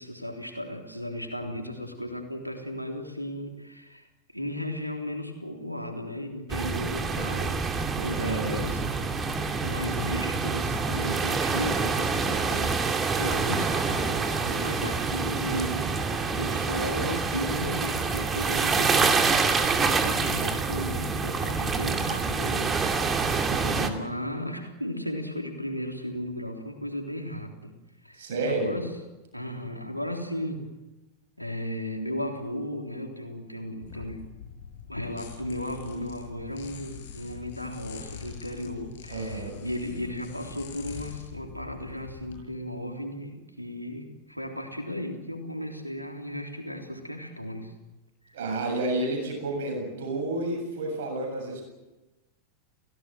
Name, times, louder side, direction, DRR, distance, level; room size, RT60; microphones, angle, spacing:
voice 1, 0.0-4.1 4.3-7.6 8.0-8.8 9.6-27.7 28.0-28.9 29.3-30.7 31.4-34.2 34.9-47.7 48.3-48.4, left 1 dB, 90° right, 3 dB, 3.5 m, -35 dB
sound 1, 6.5-23.9, right 4 dB, 20° right, 2.6 m, -27 dB
voice 2, 8.2-8.7 28.2-28.8 39.1-39.6 48.3-51.6, right 2 dB, 60° right, 3 dB, 7.7 m, -30 dB
sound 2, 33.8-42.4, left 8 dB, 60° left, 7.0 m, -44 dB
30.0 x 17.5 x 7.7 m, 1.1 s
figure-of-eight pair, 90°, 0 cm